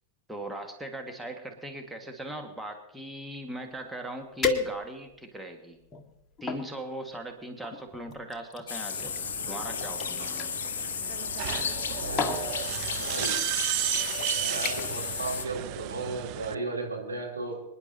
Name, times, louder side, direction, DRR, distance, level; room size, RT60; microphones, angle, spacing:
voice 1, 0.3-5.8 6.4-9.1 9.5-10.5, right 1 dB, 5° right, 3 dB, 1.7 m, -39 dB
sound 1, 3.8-3.9 4.4-5.2 5.8-6.7 7.6-10.5 11.6-11.8 12.2-12.5 13.4-13.5 13.9-14.2 14.6-15.1 15.4-15.7 16.1-16.2, left 4 dB, 20° left, 1.6 m, -34 dB
sound 2, 8.7-15.4, left 7 dB, 65° left, 0.7 m, -33 dB
sound 3, 8.9-16.5, right 18 dB, 45° right, 0.4 m, -34 dB
voice 2, 12.0-13.5 14.3-17.6, right 3 dB, 80° right, -2 dB, 3.3 m, -35 dB
26.5 x 10.5 x 2.8 m, 0.87 s
figure-of-eight pair, 90°, 0 cm